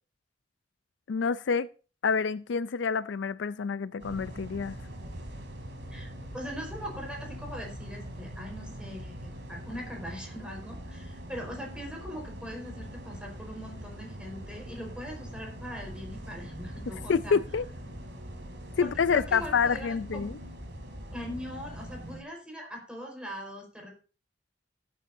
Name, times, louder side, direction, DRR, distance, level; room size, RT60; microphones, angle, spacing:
voice 1, 1.1-1.7 2.0-4.8 17.1-17.7 18.8-20.4, left 5 dB, 75° left, 0.4 m, -27 dB
sound 1, 4.0-22.2, equal, 75° right, 3.2 m, -42 dB
voice 2, 5.9-17.4 18.8-20.3 21.1-23.9, equal, 5° right, 4.7 m, -41 dB
18.0 x 9.4 x 2.7 m
head